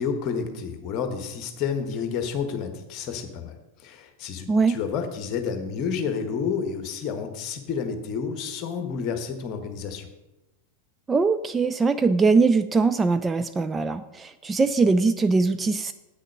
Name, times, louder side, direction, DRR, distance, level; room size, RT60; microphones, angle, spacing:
voice 1, 0.0-3.5 3.8-10.1, left 6 dB, 35° left, 7 dB, 1.3 m, -30 dB
voice 2, 11.1-15.9, right 4 dB, 15° right, 10 dB, 0.4 m, -21 dB
8.5 x 6.5 x 6.3 m, 1.0 s
figure-of-eight pair, 90°, 0 cm